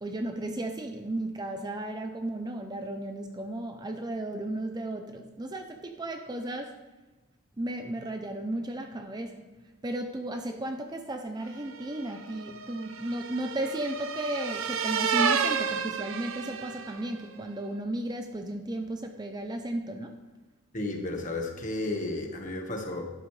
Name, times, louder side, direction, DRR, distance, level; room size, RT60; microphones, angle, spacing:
voice 1, 0.0-6.8 7.6-9.5 9.8-20.2, right 1 dB, 20° right, 5 dB, 0.5 m, -34 dB
sound 1, 11.7-17.1, right 6 dB, 65° right, 0.7 m, -31 dB
voice 2, 20.7-23.1, left 2 dB, 35° left, 2 dB, 1.4 m, -33 dB
11.5 x 11.0 x 3.3 m, 1.2 s
head